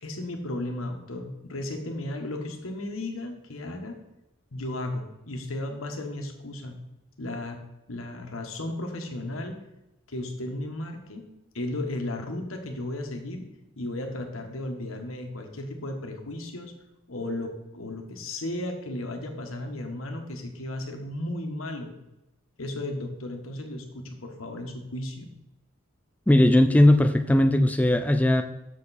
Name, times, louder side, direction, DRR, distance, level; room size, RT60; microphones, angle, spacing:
voice 1, 0.0-4.0 4.5-6.8 7.2-7.6 7.9-9.6 10.1-11.2 11.5-13.4 13.8-16.7 17.1-21.9 22.6-25.3, left 1 dB, 85° left, 3 dB, 1.4 m, -34 dB
voice 2, 26.3-28.4, left 1 dB, 5° left, 6 dB, 0.4 m, -18 dB
7.0 x 6.9 x 4.2 m, 0.94 s
head